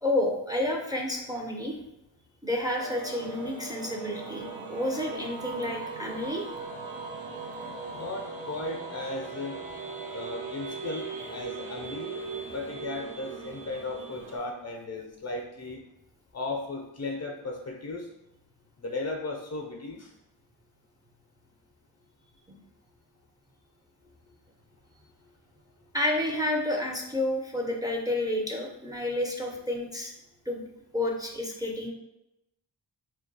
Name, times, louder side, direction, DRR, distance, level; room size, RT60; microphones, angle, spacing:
voice 1, 0.0-1.8 2.4-6.5 10.8-11.2 25.9-30.1 30.5-30.6 30.9-31.9, left 1 dB, 10° right, 0 dB, 0.6 m, -30 dB
sound 1, 2.8-14.4, right 4 dB, 80° right, 0.6 m, -39 dB
voice 2, 7.9-9.6 10.1-12.1 12.5-15.8 16.3-18.0 18.8-20.1, left 2 dB, 35° left, 2 dB, 0.6 m, -36 dB
2.3 x 2.2 x 3.9 m, 0.89 s
cardioid pair, 45°, 45 cm